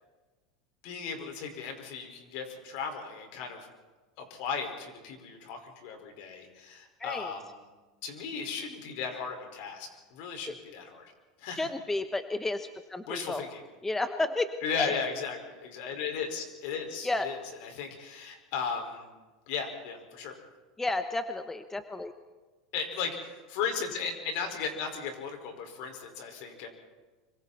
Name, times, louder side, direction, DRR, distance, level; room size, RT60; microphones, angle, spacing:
voice 1, 0.8-3.6 4.2-7.6 8.0-11.0 11.4-11.7 13.1-13.6 14.6-17.4 17.6-19.1 19.5-20.3 22.7-26.7, left 6 dB, 65° left, 4 dB, 5.3 m, -36 dB
voice 2, 7.0-7.3 10.5-10.6 11.5-13.4 13.8-14.5 14.8-14.9 17.0-17.3 20.8-22.1, left 2 dB, 10° left, 9 dB, 1.1 m, -32 dB
26.0 x 24.5 x 4.3 m, 1.3 s
supercardioid pair, 115°, 3 cm